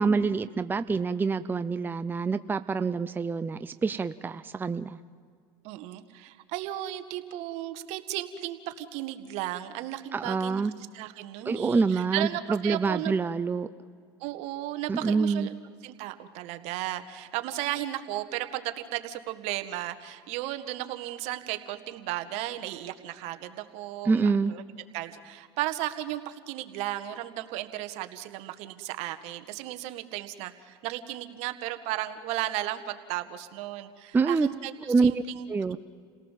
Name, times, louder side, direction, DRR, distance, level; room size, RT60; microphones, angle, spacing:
voice 1, 0.0-5.0 10.1-10.7 11.5-13.7 14.9-15.5 24.1-24.5 34.1-34.5 34.9-35.1 35.5-35.8, right 4 dB, 15° right, 12 dB, 0.6 m, -26 dB
voice 2, 5.6-13.1 14.2-15.5 15.8-24.6 24.9-35.5, right 14 dB, 65° right, 9 dB, 1.7 m, -35 dB
29.5 x 18.0 x 7.5 m, 2.1 s
supercardioid pair, 100°, 12 cm